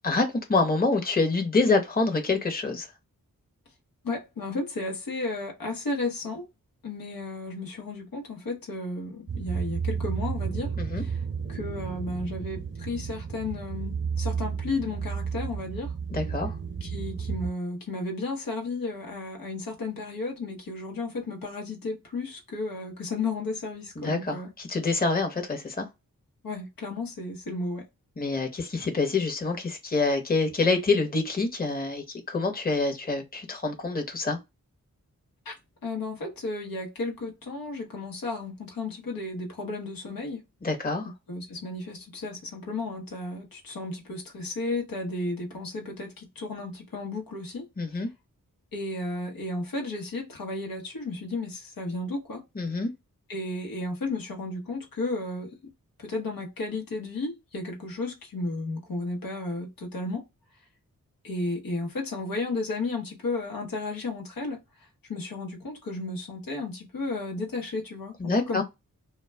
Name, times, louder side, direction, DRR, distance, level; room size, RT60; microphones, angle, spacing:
voice 1, 0.0-2.9 10.8-11.0 16.1-16.5 24.0-25.9 28.2-34.4 40.6-41.1 47.8-48.1 52.6-52.9 68.2-68.6, left 3 dB, 25° left, 0.9 m, -26 dB
voice 2, 4.0-6.4 6.8-11.2 11.5-15.9 16.8-24.5 26.4-27.8 35.4-35.5 35.8-40.4 41.3-47.7 47.9-48.1 48.7-52.4 53.3-55.5 56.0-60.2 61.2-64.6 65.1-68.6, left 2 dB, 80° left, 0.9 m, -33 dB
sound 1, 9.3-17.5, right 6 dB, 35° right, 0.7 m, -32 dB
2.3 x 2.1 x 3.2 m
cardioid pair, 40°, 35 cm